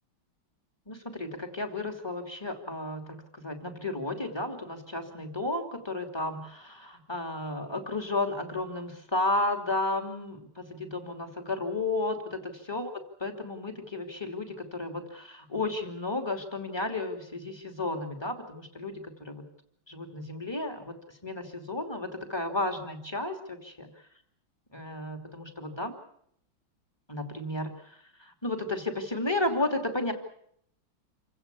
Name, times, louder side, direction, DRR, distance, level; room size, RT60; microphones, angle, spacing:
voice 1, 0.9-12.9 13.2-19.5 19.9-23.9 24.7-26.0 27.1-30.1, left 2 dB, 10° left, 5 dB, 2.9 m, -33 dB
27.5 x 16.5 x 8.4 m, 0.70 s
omnidirectional pair, 2.2 m